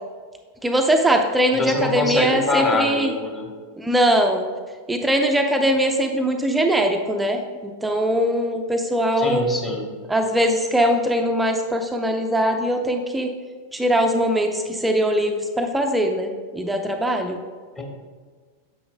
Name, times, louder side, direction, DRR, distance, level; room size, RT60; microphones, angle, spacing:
voice 1, 0.6-3.1 3.8-4.4 4.9-9.4 10.1-13.3 13.7-17.4, equal, 5° right, 4 dB, 0.6 m, -21 dB
voice 2, 1.6-3.5 9.2-9.9 17.8-17.9, left 2 dB, 20° left, 1 dB, 1.5 m, -24 dB
9.3 x 7.5 x 2.2 m, 1.5 s
figure-of-eight pair, 90°, 0 cm